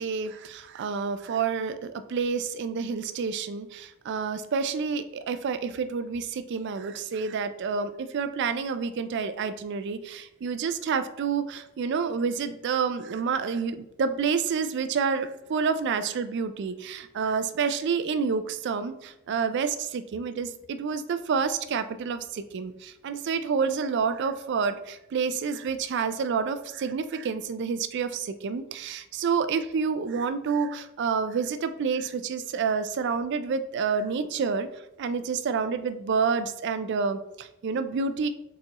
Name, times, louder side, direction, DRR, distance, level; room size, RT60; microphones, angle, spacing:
voice 1, 0.0-34.7 35.0-38.3, right 5 dB, 50° right, 11 dB, 0.3 m, -29 dB
4.3 x 4.2 x 2.9 m, 0.87 s
head